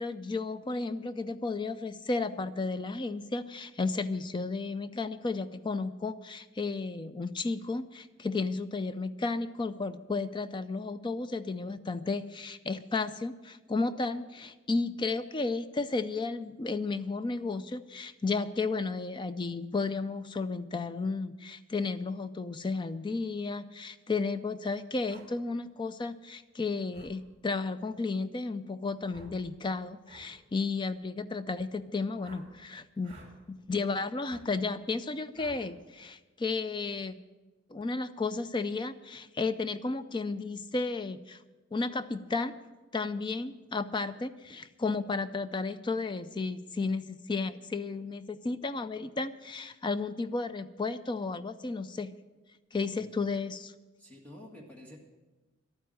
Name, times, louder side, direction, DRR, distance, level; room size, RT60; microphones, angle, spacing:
voice 1, 0.0-33.2 33.5-37.1 37.7-41.4 41.7-42.5 42.9-52.1 52.7-53.7, left 3 dB, 25° left, 13 dB, 0.4 m, -33 dB
sound 1, 25.1-25.3 26.9-27.1 29.1-29.4 30.0-30.3 32.2-32.5 33.0-33.3 34.3-34.4 35.3-35.6, right 2 dB, 35° right, 2.7 m, -52 dB
voice 2, 54.0-55.0, left 1 dB, 10° left, -2 dB, 1.8 m, -50 dB
12.0 x 9.3 x 7.6 m, 1.2 s
head